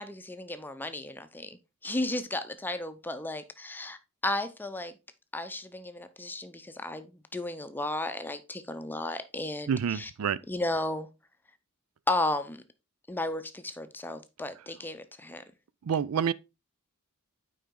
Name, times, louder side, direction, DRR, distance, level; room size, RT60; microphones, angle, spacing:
voice 1, 0.0-4.0 4.2-4.9 5.3-10.1 10.5-11.1 12.1-12.6 13.1-15.4, left 2 dB, 10° left, 0.6 m, -34 dB
voice 2, 9.7-10.4 15.9-16.3, right 7 dB, 75° right, 0.4 m, -27 dB
8.5 x 5.0 x 3.7 m
head